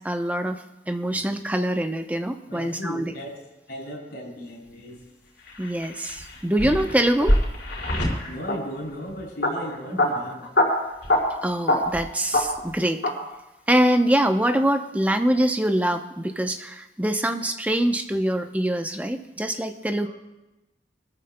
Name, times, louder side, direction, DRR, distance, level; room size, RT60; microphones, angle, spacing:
voice 1, 0.0-3.1 5.6-7.4 11.4-13.0 13.7-20.1, right 1 dB, 10° right, 6 dB, 0.7 m, -24 dB
voice 2, 2.5-3.4 3.7-5.0 8.3-10.5, equal, 60° left, -4 dB, 6.5 m, -36 dB
sound 1, 5.5-8.6 9.4-9.5 9.7-10.1 10.4-10.6 11.0-11.2 11.7-12.0 12.3-12.4 13.0-13.1, left 1 dB, 90° left, 4.6 m, -23 dB
25.0 x 14.0 x 2.2 m, 0.96 s
head